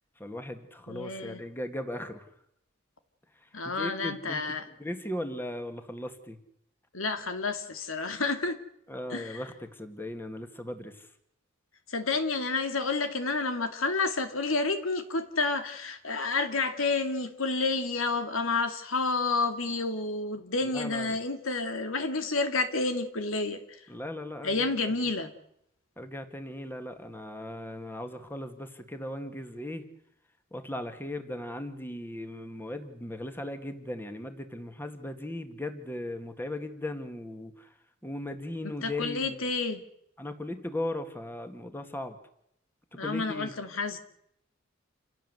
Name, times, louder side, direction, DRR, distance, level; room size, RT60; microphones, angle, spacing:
voice 1, 0.2-2.2 3.8-4.4 4.8-6.4 8.9-10.9 20.7-21.2 23.9-24.9 26.0-29.8 30.5-37.7 38.0-39.5 40.2-42.2 43.0-43.5, left 1 dB, 10° left, 2.2 m, -37 dB
voice 2, 0.9-1.4 3.5-4.7 6.9-8.6 9.1-9.4 11.9-23.8 24.4-25.3 38.6-39.8 42.9-44.0, left 3 dB, 80° left, 2.5 m, -30 dB
28.0 x 17.0 x 8.1 m
head